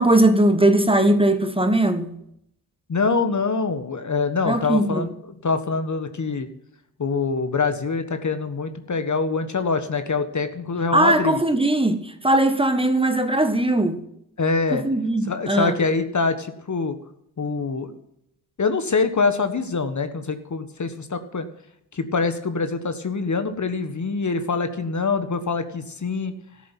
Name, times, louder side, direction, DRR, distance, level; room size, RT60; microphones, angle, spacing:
voice 1, 0.0-2.2 4.4-5.1 10.9-14.0 14.7-15.8, right 1 dB, 10° right, 1.6 m, -19 dB
voice 2, 2.9-5.1 5.4-6.5 7.0-11.4 14.4-14.8 15.3-17.0 17.4-17.9 18.6-21.5 21.9-26.3, left 4 dB, 40° left, 1.5 m, -24 dB
13.5 x 7.5 x 9.1 m
supercardioid pair, 45°, 43 cm